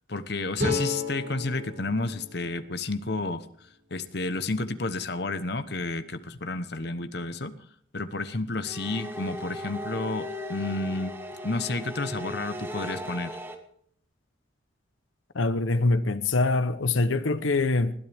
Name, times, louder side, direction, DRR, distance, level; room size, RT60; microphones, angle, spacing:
voice 1, 0.1-7.6 7.9-11.2 11.4-13.4, left 2 dB, 55° left, 1.0 m, -31 dB
sound 1, 0.6-3.8, left 3 dB, 50° right, 6.8 m, -34 dB
sound 2, 8.6-13.5, left 1 dB, 10° right, 1.5 m, -37 dB
voice 2, 15.3-17.9, left 3 dB, 85° left, 0.9 m, -24 dB
20.5 x 13.0 x 3.5 m
head